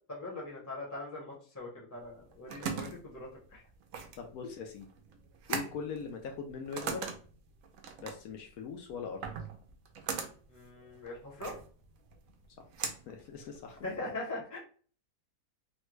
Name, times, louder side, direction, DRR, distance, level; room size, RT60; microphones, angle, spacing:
voice 1, 0.1-3.6 10.5-11.5 13.8-14.6, left 2 dB, 15° left, -3 dB, 0.7 m, -41 dB
sound 1, 2.1-14.0, right 6 dB, 65° right, 0.9 m, -41 dB
voice 2, 4.2-4.9 5.5-7.1 8.0-9.3 13.1-13.8, left 5 dB, 70° left, 3 dB, 0.9 m, -41 dB
3.4 x 2.2 x 3.0 m, 0.41 s
omnidirectional pair, 1.8 m